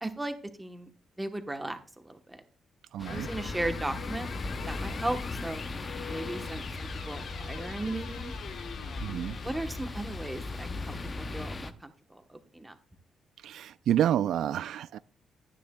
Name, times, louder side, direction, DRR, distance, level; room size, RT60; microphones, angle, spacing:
voice 1, 0.0-0.9 1.2-2.4 3.1-4.3 4.7-5.6 6.1-8.3 9.4-12.8, right 2 dB, 10° right, 1.0 m, -36 dB
voice 2, 2.9-3.3 9.0-9.4 13.4-15.0, right 10 dB, 75° right, 0.3 m, -29 dB
sound 1, 3.0-11.7, left 3 dB, 25° left, 0.6 m, -38 dB
sound 2, 3.1-11.5, left 7 dB, 65° left, 1.1 m, -44 dB
13.0 x 9.9 x 2.2 m
cardioid pair, 150°, 0 cm